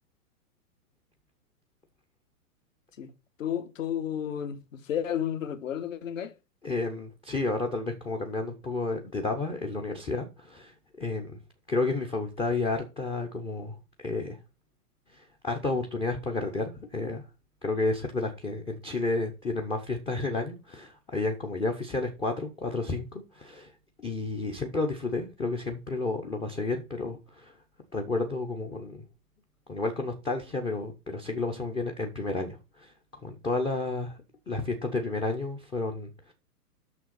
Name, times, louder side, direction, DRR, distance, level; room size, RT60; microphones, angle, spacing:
voice 1, 3.4-6.3, left 9 dB, 55° left, 1.4 m, -32 dB
voice 2, 6.6-11.3 11.7-14.4 15.1-17.2 17.6-23.7 24.0-27.5 27.9-29.0 29.7-32.9 33.2-34.2 34.5-36.3, left 3 dB, 10° left, 0.6 m, -31 dB
6.7 x 6.2 x 5.7 m
figure-of-eight pair, 115°, 46 cm